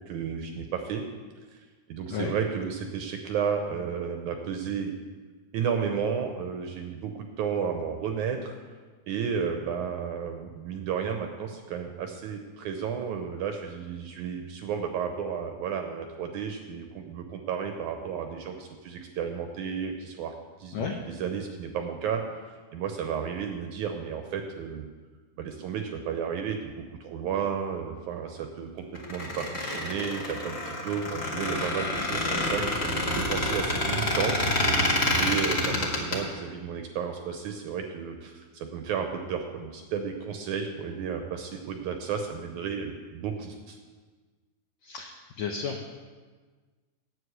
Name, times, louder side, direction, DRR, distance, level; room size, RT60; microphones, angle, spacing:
voice 1, 0.1-1.0 1.9-4.9 5.5-7.1 7.4-8.6 9.1-20.3 20.6-24.9 25.4-26.7 27.0-43.8, right 7 dB, 75° right, 5 dB, 1.8 m, -33 dB
Squeak, 28.9-36.2, left 1 dB, 45° left, 0.8 m, -27 dB
voice 2, 45.4-45.9, left 6 dB, 90° left, 2 dB, 1.5 m, -32 dB
9.6 x 8.4 x 6.5 m, 1.4 s
omnidirectional pair, 4.2 m